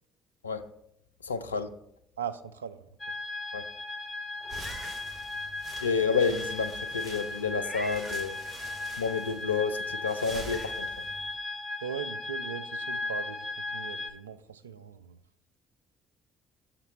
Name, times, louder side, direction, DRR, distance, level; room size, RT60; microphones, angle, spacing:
voice 1, 1.2-1.8 3.5-3.6 5.8-8.4 9.0-11.1, left 5 dB, 90° left, 0.3 m, -30 dB
voice 2, 2.2-3.2 11.8-15.2, right 7 dB, 85° right, 0.3 m, -39 dB
sound 1, 3.0-14.1, left 2 dB, 35° left, 0.9 m, -37 dB
Meow, 4.4-4.9 5.4-5.5 7.6-8.2 9.8-9.9 10.4-10.7, left 1 dB, 20° left, 1.7 m, -42 dB
sound 2, 4.4-11.3, right 2 dB, 45° right, 1.9 m, -46 dB
6.6 x 5.8 x 4.1 m
figure-of-eight pair, 50°, 0 cm